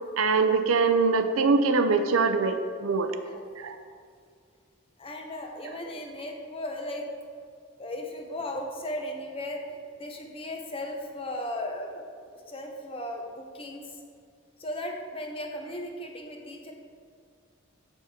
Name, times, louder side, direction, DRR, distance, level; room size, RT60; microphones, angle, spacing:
voice 1, 0.2-3.1 3.6-3.8, right 4 dB, 80° right, 8 dB, 0.6 m, -23 dB
voice 2, 5.0-7.0 7.8-14.0 14.6-16.7, left 1 dB, 25° left, 2 dB, 0.8 m, -36 dB
7.2 x 6.6 x 4.3 m, 2.2 s
head